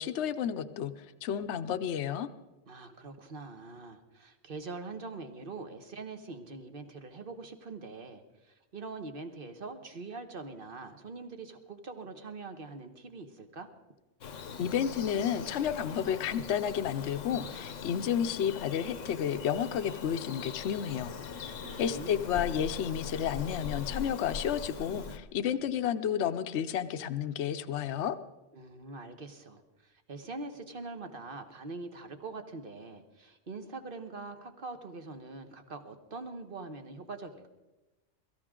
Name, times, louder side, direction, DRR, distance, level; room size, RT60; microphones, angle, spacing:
voice 1, 0.0-2.3 14.6-21.1 21.8-28.1, left 9 dB, 70° left, 10 dB, 1.0 m, -31 dB
voice 2, 2.7-13.7 21.6-22.4 28.5-37.5, right 3 dB, 45° right, 7 dB, 1.4 m, -43 dB
Bird vocalization bird call bird song, 14.2-25.2, left 5 dB, 85° left, 1.3 m, -41 dB
23.0 x 14.0 x 3.7 m, 1.1 s
omnidirectional pair, 1.3 m